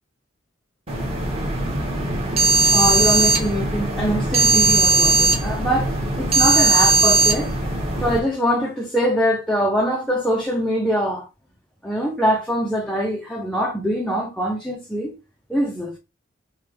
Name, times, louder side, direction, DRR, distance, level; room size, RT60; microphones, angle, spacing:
sound 1, 0.9-8.2, right 3 dB, 35° right, 1.5 m, -19 dB
voice 1, 2.6-7.5 7.9-11.3 11.8-15.1 15.5-16.0, equal, 5° left, 0.7 m, -23 dB
6.7 x 2.4 x 3.3 m
head